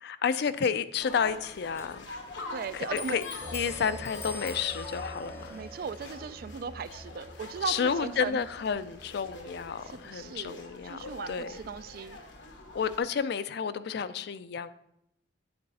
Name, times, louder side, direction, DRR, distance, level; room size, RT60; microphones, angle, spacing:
voice 1, 0.0-2.1 2.7-3.2 3.5-5.6 7.7-11.7 12.7-14.7, left 6 dB, 65° left, 14 dB, 0.4 m, -31 dB
sound 1, 1.0-13.0, left 2 dB, 90° left, 1.1 m, -44 dB
Clock, 1.2-10.4, left 4 dB, 15° left, 0.6 m, -49 dB
voice 2, 2.5-3.2 5.5-8.4 9.9-12.2, right 6 dB, 55° right, 14 dB, 0.3 m, -38 dB
sound 2, 3.4-9.9, right 1 dB, 20° right, 0.7 m, -47 dB
7.8 x 4.1 x 5.4 m, 0.79 s
head